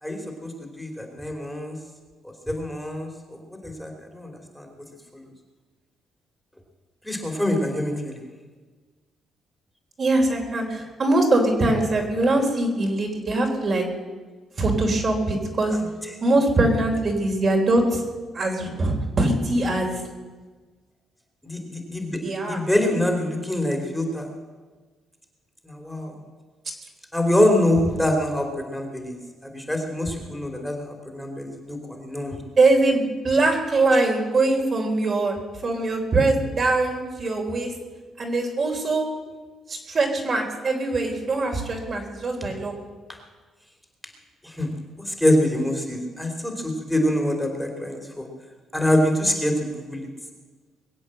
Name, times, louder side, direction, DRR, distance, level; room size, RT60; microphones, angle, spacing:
voice 1, 0.0-1.8 2.5-4.7 5.1-5.3 7.0-8.2 21.4-22.2 22.5-24.3 25.6-26.1 27.1-29.2 29.5-32.4 44.4-44.7 45.0-48.3 48.7-50.1, left 1 dB, 5° left, 2 dB, 3.2 m, -25 dB
voice 2, 10.0-13.9 14.6-15.8 16.2-18.0 18.3-20.0 22.2-22.6 32.6-35.4 35.6-37.7 38.2-39.1 39.7-42.7, right 2 dB, 45° right, 1 dB, 3.9 m, -22 dB
22.0 x 8.2 x 7.7 m, 1.4 s
cardioid pair, 90°, 0 cm